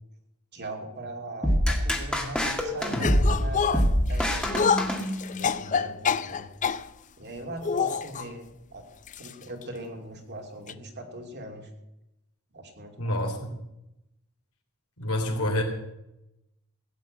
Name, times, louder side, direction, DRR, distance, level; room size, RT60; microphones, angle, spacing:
voice 1, 0.5-4.8 5.3-6.5 7.2-8.8 9.2-11.7 12.5-13.4, right 1 dB, 50° right, 3 dB, 2.6 m, -40 dB
sound 1, 1.4-5.6, equal, 5° left, 1.9 m, -25 dB
sound 2, 3.0-6.9 7.6-8.3 9.1-9.3 9.6-9.7 10.7-10.8, left 6 dB, 35° left, 0.4 m, -27 dB
voice 2, 13.0-13.5 15.0-15.6, left 1 dB, 70° left, 3 dB, 3.2 m, -27 dB
16.5 x 7.3 x 8.9 m, 0.89 s
head